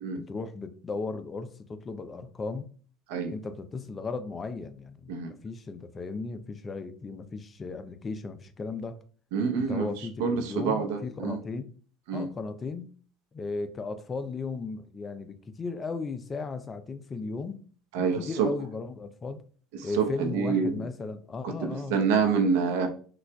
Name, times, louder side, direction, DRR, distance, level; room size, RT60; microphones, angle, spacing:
voice 1, 0.2-2.7 3.3-5.2 5.4-9.0 9.5-11.7 12.1-12.9 13.3-17.6 18.0-19.4 19.8-22.0, left 4 dB, 30° left, 0.5 m, -36 dB
voice 2, 9.3-9.9 10.2-11.4 12.1-12.3 17.9-18.5 19.8-20.8 21.4-22.9, right 5 dB, 75° right, 0.7 m, -27 dB
5.7 x 2.4 x 2.2 m
hypercardioid pair, 85°, 0 cm